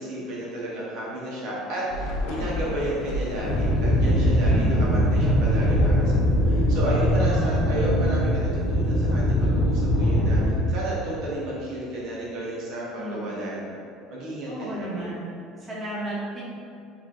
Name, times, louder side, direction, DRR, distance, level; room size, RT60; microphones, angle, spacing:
voice 1, 0.0-13.8 14.1-15.0, right 1 dB, 60° right, -6 dB, 0.8 m, -32 dB
Thunder / Rain, 1.9-9.4, left 1 dB, 70° left, 0.4 m, -35 dB
sound 1, 3.4-10.5, equal, 40° left, 0.7 m, -21 dB
voice 2, 4.5-5.0 7.3-7.6 13.0-13.3 14.5-15.3 15.6-16.4, right 1 dB, 20° right, -8 dB, 0.9 m, -33 dB
3.1 x 2.4 x 3.9 m, 2.5 s
cardioid pair, 145°, 0 cm